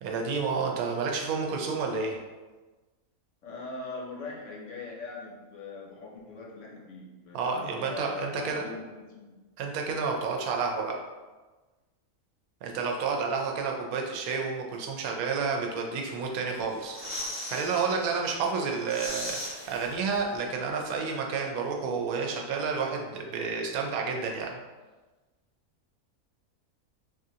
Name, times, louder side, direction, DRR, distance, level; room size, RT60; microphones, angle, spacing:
voice 1, 0.0-2.2 7.3-8.7 9.6-11.0 12.6-17.0 17.5-24.6, right 5 dB, 80° right, 1 dB, 1.0 m, -30 dB
voice 2, 3.4-9.4, left 3 dB, 65° left, -2 dB, 0.8 m, -41 dB
sound 1, 16.6-17.9 18.3-18.4 18.7-20.4 20.7-20.8, left 1 dB, 10° right, 0.7 m, -38 dB
3.8 x 2.4 x 2.7 m, 1.2 s
omnidirectional pair, 1.5 m